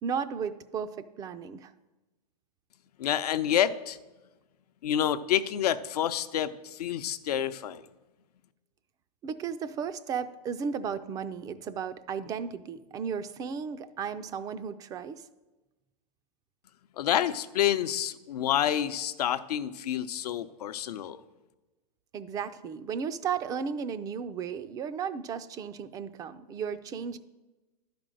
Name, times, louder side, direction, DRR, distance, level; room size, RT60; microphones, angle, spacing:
voice 1, 0.0-1.7 9.2-15.2 22.1-27.2, right 6 dB, 20° right, 13 dB, 0.4 m, -34 dB
voice 2, 3.0-4.0 4.8-7.8 17.0-21.2, left 10 dB, 70° left, 11 dB, 0.7 m, -28 dB
11.5 x 5.2 x 7.6 m, 1.1 s
hypercardioid pair, 140°, 20 cm